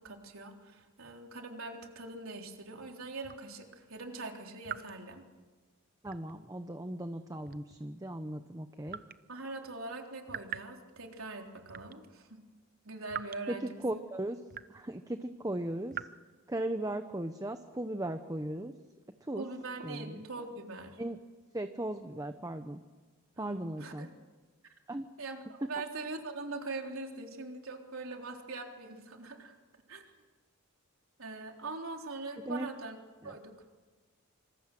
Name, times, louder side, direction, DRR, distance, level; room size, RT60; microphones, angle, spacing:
voice 1, 0.0-5.2 9.3-12.4 12.8-14.0 19.4-21.0 23.4-24.1 25.2-29.5 29.9-30.1 31.2-33.0 33.2-33.5, right 3 dB, 75° right, 2 dB, 3.7 m, -42 dB
sound 1, 3.2-3.5 4.6-5.0 6.1-6.4 7.5-7.9 8.9-9.2 10.3-10.8 11.7-12.0 13.1-13.4 14.5-14.9 15.9-16.1, right 9 dB, 45° right, 0.7 m, -42 dB
voice 2, 6.0-9.0 13.5-13.6 13.8-14.4 14.7-16.0 16.5-18.7 19.2-19.4 19.8-20.2 21.0-21.2 21.5-22.8 23.4-24.1 24.9-25.1 32.5-32.7 33.2-33.3, right 1 dB, 15° right, 8 dB, 0.9 m, -37 dB
26.0 x 25.5 x 7.7 m, 1.3 s
head